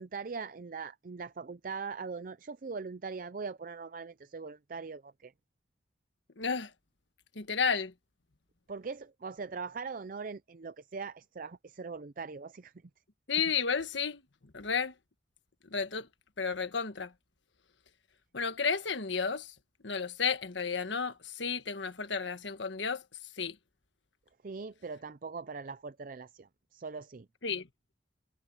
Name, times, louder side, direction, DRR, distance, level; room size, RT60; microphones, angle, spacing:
voice 1, 0.0-5.3 8.7-12.7 24.4-27.3, right 4 dB, 50° right, 0.5 m, -41 dB
voice 2, 6.4-6.7 7.3-7.9 13.3-14.2 14.5-14.9 15.6-16.1 16.4-17.1 18.3-19.5 19.8-23.0 23.4-23.6 27.4-27.7, left 6 dB, 80° left, 1.4 m, -32 dB
head